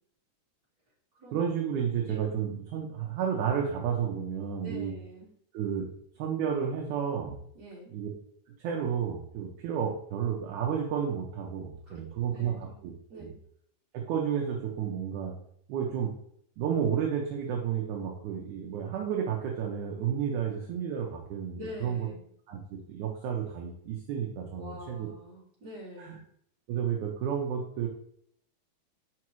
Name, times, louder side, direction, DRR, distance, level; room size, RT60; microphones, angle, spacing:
voice 1, 1.3-4.9 5.5-5.9 6.2-7.4 7.9-8.1 8.6-13.3 13.9-15.3 15.7-16.1 16.6-22.1 22.5-25.1 26.0-26.2 26.7-27.9, right 8 dB, 75° right, -1 dB, 1.9 m, -31 dB
voice 2, 4.6-5.3 7.5-7.9 11.9-12.8 13.1-13.3 21.5-22.2 24.5-26.2, equal, 30° right, -8 dB, 2.9 m, -45 dB
6.0 x 5.1 x 3.1 m, 0.66 s
omnidirectional pair, 4.3 m